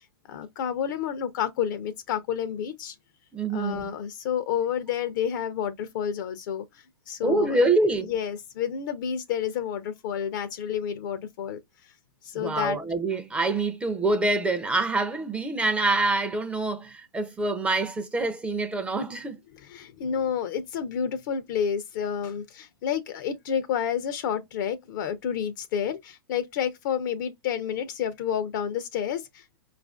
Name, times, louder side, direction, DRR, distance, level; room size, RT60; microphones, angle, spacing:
voice 1, 0.3-2.9 3.5-7.7 8.0-11.6 12.2-12.8 19.5-29.6, left 8 dB, 55° left, 0.5 m, -30 dB
voice 2, 3.3-3.9 7.2-8.1 12.3-19.4, right 2 dB, 10° right, 0.4 m, -26 dB
4.7 x 2.4 x 2.3 m
hypercardioid pair, 130°, 12 cm